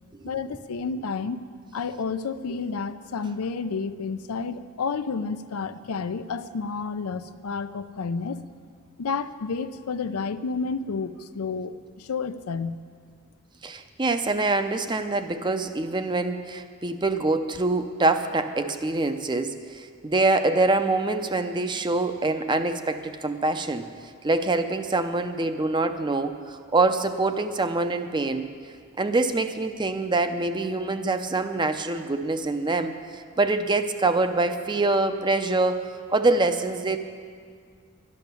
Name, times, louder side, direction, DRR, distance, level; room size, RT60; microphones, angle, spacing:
voice 1, 0.2-1.4 1.7-8.4 9.0-12.8, left 5 dB, 85° left, 12 dB, 0.5 m, -30 dB
voice 2, 13.6-23.9 24.2-28.5 29.0-35.8 36.1-37.0, right 2 dB, 20° right, 9 dB, 0.5 m, -25 dB
11.5 x 10.5 x 6.9 m, 2.1 s
head